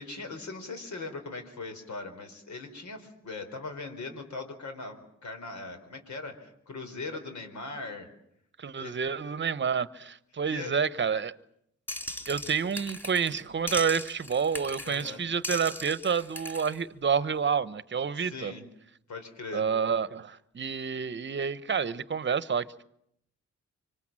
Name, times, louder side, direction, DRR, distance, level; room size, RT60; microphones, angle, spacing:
voice 1, 0.0-8.1 8.8-9.0 10.4-10.7 14.8-15.2 18.1-18.7 19.1-19.7, left 3 dB, 70° left, 4.4 m, -40 dB
voice 2, 8.6-11.3 12.3-18.5 19.5-22.8, right 6 dB, 40° right, 1.0 m, -29 dB
sound 1, 11.9-13.4 13.7-15.1 15.4-16.8, left 1 dB, 5° left, 6.3 m, -38 dB
25.5 x 24.5 x 7.5 m
cardioid pair, 100°, 30 cm